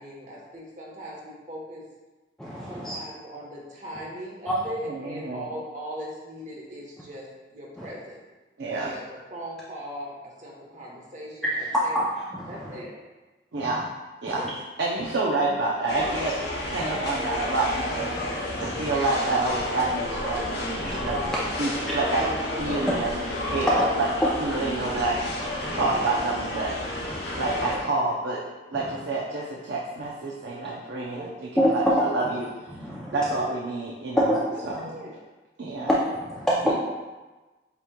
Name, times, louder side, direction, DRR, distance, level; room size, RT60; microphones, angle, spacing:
voice 1, 0.0-1.8 2.7-8.2 8.7-12.0 12.5-12.9 14.3-14.5 31.0-31.3 33.1-33.2 34.5-35.1, equal, 40° right, -3 dB, 1.0 m, -39 dB
voice 2, 2.4-3.0 4.5-4.6 7.8-7.9 11.4-12.1 12.3-12.8 13.6-13.8 14.3-14.5 16.7-17.0 18.6-18.9 20.8-21.4 21.8-21.9 22.7-22.9 23.6-23.8 25.6-25.8 27.1-27.2 27.5-27.6 31.6-32.3 32.7-33.2 34.2-34.8 35.9-36.7, equal, 5° left, -7 dB, 0.4 m, -26 dB
voice 3, 4.8-5.4 8.6-8.9 13.5-13.8 14.2-14.4 14.8-20.5 21.0-21.2 21.6-22.3 22.6-23.2 23.5-24.1 24.4-25.2 25.8-27.0 27.4-28.4 28.7-32.5 33.1-34.3 34.7-34.9 35.6-35.9 36.6-36.7, right 2 dB, 85° right, -4 dB, 0.6 m, -28 dB
sound 1, 15.9-27.8, left 1 dB, 70° left, 0.9 m, -31 dB
8.0 x 2.9 x 2.2 m, 1.2 s
head